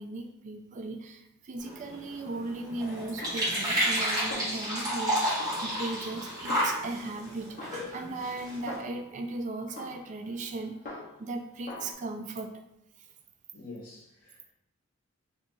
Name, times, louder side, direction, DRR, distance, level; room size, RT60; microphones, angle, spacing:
voice 1, 0.0-10.7 11.2-12.5, right 2 dB, 35° right, 5 dB, 0.3 m, -37 dB
sound 1, 1.6-8.8, equal, 20° right, 1.3 m, -31 dB
Snare drum, 3.2-4.0 4.3-5.1 5.4-7.2 7.6-9.2 9.8-11.4 11.7-11.9, left 2 dB, 40° left, 0.8 m, -44 dB
voice 2, 13.5-14.5, left 2 dB, 80° left, -3 dB, 1.0 m, -46 dB
2.9 x 2.5 x 3.6 m, 0.82 s
head